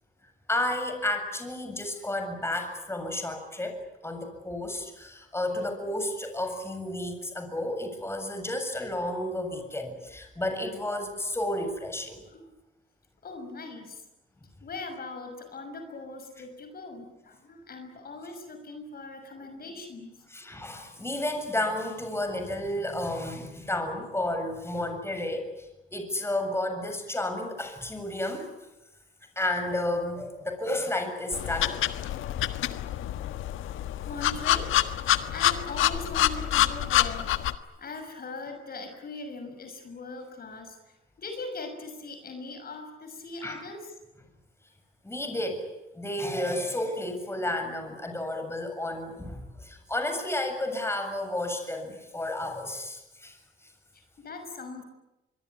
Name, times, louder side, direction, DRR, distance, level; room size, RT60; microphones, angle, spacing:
voice 1, 0.5-12.2 20.3-28.5 29.4-31.8 43.4-43.6 45.0-45.7 45.9-53.4, left 1 dB, 10° left, 6 dB, 7.4 m, -32 dB
voice 2, 12.3-12.6 13.2-14.0 14.6-20.2 33.9-37.4 37.8-43.9 53.9-54.8, left 3 dB, 50° left, 6 dB, 6.3 m, -41 dB
sound 1, 31.3-37.5, left 13 dB, 85° left, 1.5 m, -27 dB
25.0 x 23.5 x 9.8 m, 0.96 s
cardioid pair, 90°, 20 cm